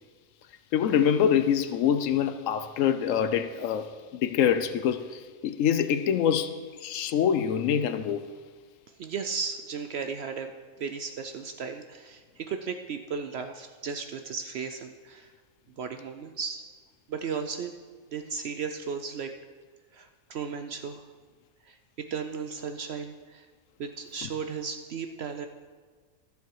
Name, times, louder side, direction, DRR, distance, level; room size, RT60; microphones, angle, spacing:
voice 1, 0.7-8.2 24.2-24.3, left 8 dB, 70° left, 0.9 m, -25 dB
voice 2, 8.9-10.5 10.8-15.3 15.8-16.6 17.1-17.7 18.1-19.3 19.9-21.1 21.6-23.5 23.8-25.5, right 6 dB, 65° right, 0.7 m, -35 dB
13.0 x 6.9 x 4.7 m
omnidirectional pair, 1.5 m